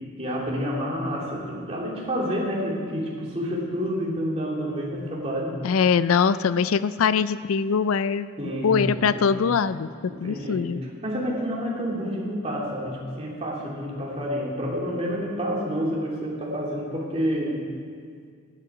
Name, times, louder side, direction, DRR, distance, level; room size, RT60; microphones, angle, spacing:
voice 1, 0.2-5.6 8.4-9.4 10.0-17.7, equal, 30° right, -4 dB, 2.7 m, -29 dB
voice 2, 5.6-8.3 8.6-10.8, left 6 dB, 90° left, 15 dB, 0.4 m, -22 dB
17.0 x 11.0 x 4.8 m, 2.1 s
head